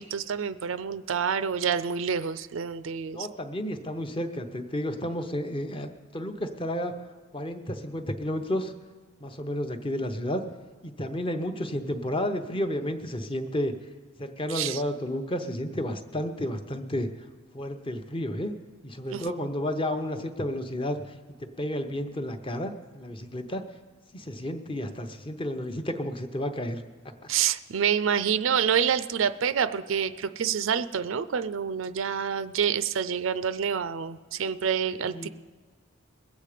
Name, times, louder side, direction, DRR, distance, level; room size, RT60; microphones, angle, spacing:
voice 1, 0.0-3.3 14.5-14.8 19.1-19.3 27.3-35.3, right 7 dB, 70° right, 14 dB, 0.4 m, -27 dB
voice 2, 3.1-6.9 7.3-8.7 9.2-10.4 10.8-13.7 14.2-17.1 17.5-18.5 18.8-21.0 21.4-23.6 24.1-26.8 35.1-35.3, left 1 dB, 25° left, 7 dB, 0.8 m, -31 dB
21.0 x 8.3 x 5.0 m, 1.5 s
head